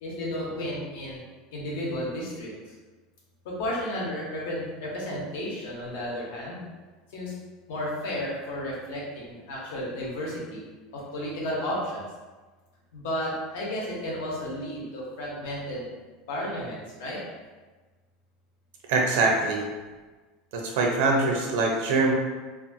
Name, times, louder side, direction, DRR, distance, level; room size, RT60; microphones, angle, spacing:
voice 1, 0.0-1.2 1.5-2.5 3.4-6.6 7.1-7.3 7.7-10.6 10.9-12.0 12.9-15.9 16.3-17.2, left 1 dB, 85° left, -4 dB, 0.9 m, -33 dB
voice 2, 18.9-19.6 20.5-22.1, right 3 dB, 75° right, 0 dB, 0.6 m, -23 dB
2.7 x 2.4 x 2.7 m, 1.3 s
supercardioid pair, 165°, 0 cm